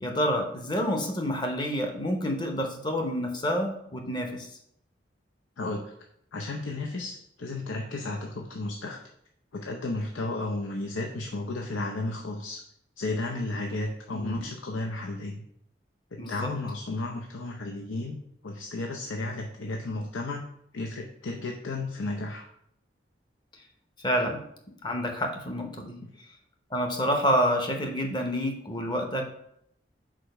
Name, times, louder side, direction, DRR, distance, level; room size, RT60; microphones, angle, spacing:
voice 1, 0.0-4.5 14.1-14.4 16.2-16.5 24.0-24.4 24.8-26.0 26.7-29.3, equal, 25° left, 3 dB, 0.8 m, -28 dB
voice 2, 5.6-5.9 6.3-9.0 9.5-12.6 13.0-15.4 16.1-18.2 18.4-20.4 20.7-22.5, left 2 dB, 85° left, 2 dB, 0.6 m, -33 dB
5.0 x 4.4 x 4.9 m, 0.72 s
head